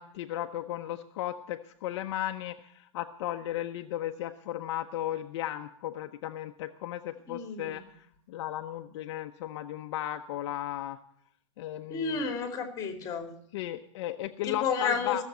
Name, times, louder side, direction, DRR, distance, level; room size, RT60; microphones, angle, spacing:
voice 1, 0.0-11.0 11.6-12.3 13.5-15.2, left 13 dB, 60° left, 6 dB, 0.8 m, -35 dB
voice 2, 7.3-7.8 11.9-13.3 14.4-15.2, left 5 dB, 20° left, 6 dB, 2.4 m, -31 dB
15.5 x 7.2 x 9.2 m, 0.67 s
supercardioid pair, 140°, 16 cm